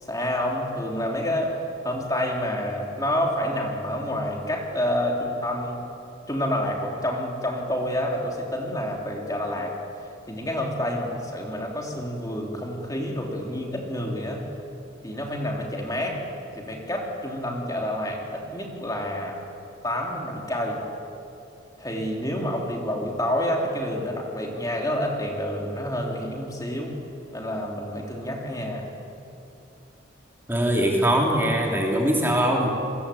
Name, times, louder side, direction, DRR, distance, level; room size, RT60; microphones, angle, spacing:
voice 1, 0.0-1.6 1.8-5.8 6.3-9.8 10.3-14.4 15.0-16.2 16.5-19.4 19.8-20.8 21.8-26.9 27.3-28.9, left 1 dB, 15° left, 0 dB, 3.2 m, -28 dB
voice 2, 30.5-32.7, right 1 dB, 10° right, -1 dB, 3.2 m, -22 dB
28.5 x 23.5 x 8.6 m, 2.8 s
head